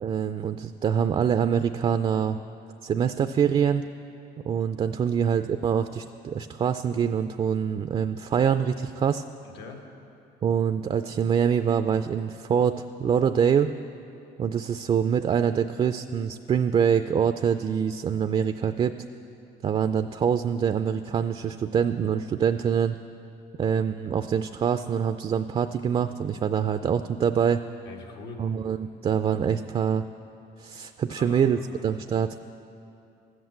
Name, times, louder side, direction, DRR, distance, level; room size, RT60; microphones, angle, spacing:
voice 1, 0.0-2.4 2.8-3.8 4.4-9.2 10.4-13.7 14.4-19.0 19.6-23.0 23.6-27.6 28.4-30.1 30.6-32.4, right 7 dB, 35° right, 10 dB, 0.4 m, -25 dB
voice 2, 9.4-9.8 27.9-28.4 31.1-31.9, left 3 dB, 90° left, 2 dB, 1.8 m, -43 dB
13.5 x 8.0 x 7.6 m, 2.7 s
cardioid pair, 110°, 17 cm